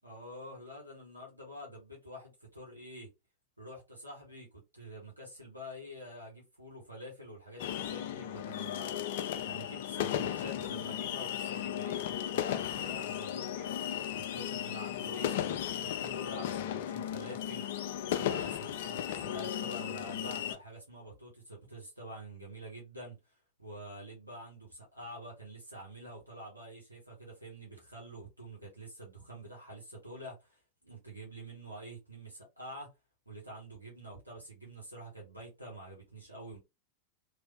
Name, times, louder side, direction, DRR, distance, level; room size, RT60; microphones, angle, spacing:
voice 1, 0.0-3.1 3.6-9.0 9.4-13.7 14.1-23.2 23.6-32.9 33.3-36.6, equal, 85° right, 1.2 m, -47 dB
sound 1, 7.6-20.6, left 10 dB, 55° left, 0.4 m, -35 dB
3.3 x 2.5 x 3.2 m
figure-of-eight pair, 90°, 0 cm